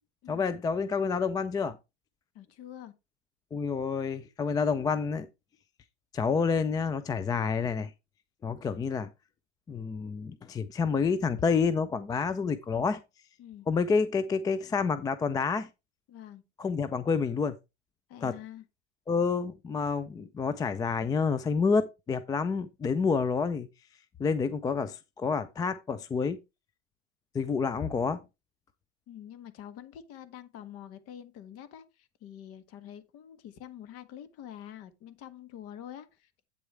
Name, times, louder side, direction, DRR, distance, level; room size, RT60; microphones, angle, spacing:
voice 1, 0.3-1.8 3.5-5.3 6.1-7.9 8.4-9.1 9.7-13.0 13.7-15.7 16.6-17.6 18.2-18.4 19.1-23.7 24.2-26.4 27.3-28.2, left 5 dB, 10° left, 0.4 m, -28 dB
voice 2, 2.3-2.9 13.4-13.7 16.1-16.4 18.1-18.6 29.1-36.4, left 10 dB, 40° left, 1.6 m, -46 dB
8.6 x 7.7 x 3.3 m
hypercardioid pair, 110°, 35 cm